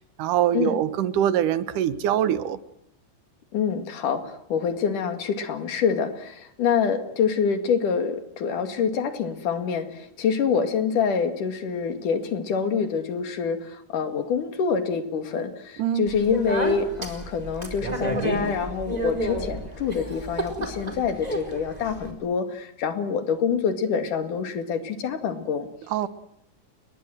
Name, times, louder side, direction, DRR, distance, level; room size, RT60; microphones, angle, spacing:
voice 1, 0.2-2.6 15.8-16.1 25.9-26.1, right 11 dB, 80° right, 14 dB, 2.7 m, -23 dB
voice 2, 3.5-25.7, left 6 dB, 75° left, 8 dB, 3.7 m, -26 dB
Speech, 16.1-22.1, right 1 dB, 10° right, 4.5 m, -31 dB
29.5 x 22.0 x 7.8 m, 0.79 s
omnidirectional pair, 3.6 m